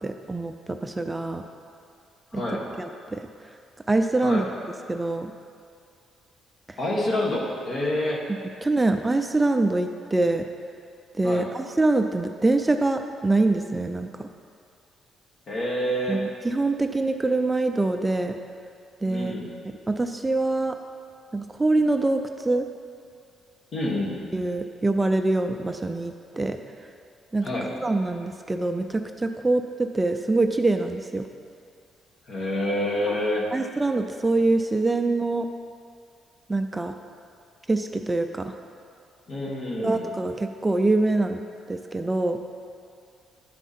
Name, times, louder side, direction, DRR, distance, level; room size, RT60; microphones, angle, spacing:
voice 1, 0.0-1.4 2.3-2.4 2.8-3.2 3.9-4.5 4.9-5.3 6.7-6.8 8.6-10.5 11.2-14.3 16.1-18.4 19.0-19.4 19.9-20.8 21.3-22.7 24.3-26.6 27.3-27.5 27.8-31.3 33.1-33.2 33.5-35.5 36.5-36.9 37.7-38.5 39.8-41.4 41.7-42.4, right 2 dB, 15° right, 6 dB, 0.4 m, -24 dB
voice 2, 2.3-2.6 4.2-4.4 6.8-8.2 11.2-11.5 15.5-16.2 19.1-19.5 23.7-24.2 27.4-27.7 32.3-33.5 39.3-40.0, left 1 dB, 60° left, -3 dB, 1.7 m, -27 dB
11.0 x 4.6 x 4.3 m, 2.3 s
cardioid pair, 90°, 0 cm